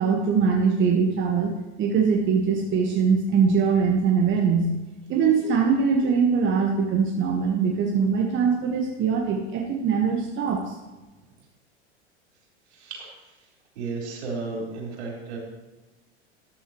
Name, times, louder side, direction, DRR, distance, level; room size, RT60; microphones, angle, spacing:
voice 1, 0.0-1.5 1.8-4.7 5.1-10.7, right 6 dB, 35° right, 1 dB, 1.5 m, -22 dB
voice 2, 12.7-13.1 13.8-15.4, right 3 dB, 65° right, -2 dB, 4.5 m, -33 dB
13.5 x 12.0 x 3.1 m, 1.1 s
figure-of-eight pair, 85°, 36 cm